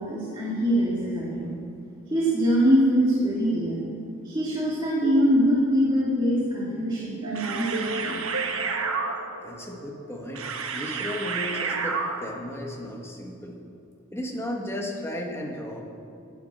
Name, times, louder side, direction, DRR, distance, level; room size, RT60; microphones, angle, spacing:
voice 1, 0.0-1.6 2.1-3.8 4.2-8.2, equal, 20° right, -7 dB, 2.2 m, -23 dB
sound 1, 7.2-12.5, right 4 dB, 80° right, 1.2 m, -30 dB
voice 2, 9.4-13.6 14.1-15.8, left 1 dB, 10° left, 1 dB, 1.5 m, -35 dB
11.0 x 9.6 x 7.5 m, 2.6 s
head